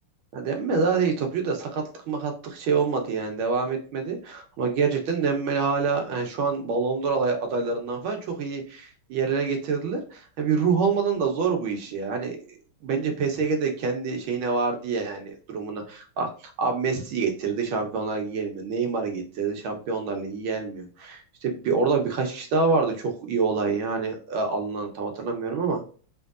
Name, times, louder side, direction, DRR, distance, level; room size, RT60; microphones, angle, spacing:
voice 1, 0.3-12.5 12.8-25.9, right 5 dB, 70° right, 3 dB, 1.6 m, -26 dB
5.3 x 3.1 x 2.4 m, 0.39 s
omnidirectional pair, 2.4 m